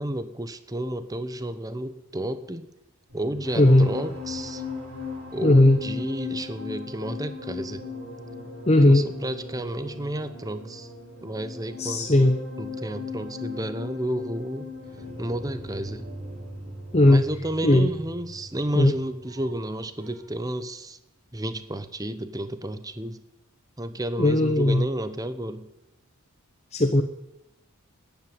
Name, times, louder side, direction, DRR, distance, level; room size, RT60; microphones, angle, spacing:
voice 1, 0.0-2.7 3.1-4.6 5.3-7.8 8.8-10.9 11.2-12.3 12.6-14.7 15.2-16.1 17.1-21.0 21.3-23.2 23.8-25.7, right 1 dB, 15° right, 12 dB, 0.9 m, -31 dB
sound 1, 3.1-19.7 20.0-20.3, left 3 dB, 70° right, 7.8 m, -38 dB
voice 2, 3.6-3.9 5.4-5.8 8.7-9.1 11.8-12.3 16.9-17.3 17.6-17.9 18.7-18.9 24.2-24.8 26.7-27.0, left 1 dB, 30° left, 7 dB, 0.9 m, -17 dB
14.0 x 10.5 x 9.6 m, 0.87 s
head